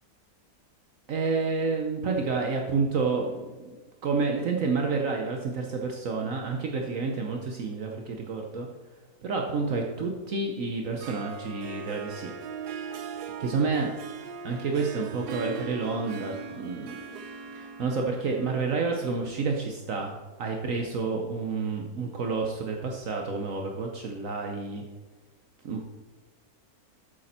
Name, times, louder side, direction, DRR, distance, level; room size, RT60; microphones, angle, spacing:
voice 1, 1.1-8.7 9.2-12.3 13.4-13.9 14.4-17.0 17.5-20.1 20.4-24.8 25.6-25.9, right 4 dB, 60° right, 2 dB, 1.1 m, -29 dB
Harp, 10.8-19.7, right 5 dB, 85° right, 1.2 m, -40 dB
8.3 x 7.7 x 4.3 m, 1.2 s
omnidirectional pair, 1.7 m